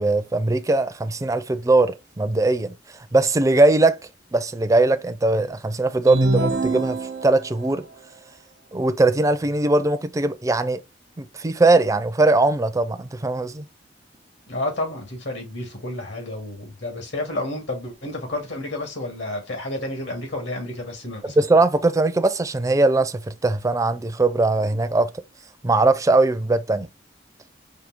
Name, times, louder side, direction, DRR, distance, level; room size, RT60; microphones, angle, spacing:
voice 1, 0.0-2.7 3.1-4.0 4.3-7.0 7.2-7.8 8.7-10.8 11.2-13.6 21.4-25.1 25.6-26.9, right 2 dB, 20° right, 0.4 m, -20 dB
sound 1, 6.1-7.7, right 2 dB, 85° right, 0.9 m, -24 dB
voice 2, 14.5-21.4, left 1 dB, 80° left, 2.1 m, -30 dB
5.0 x 2.7 x 3.5 m
head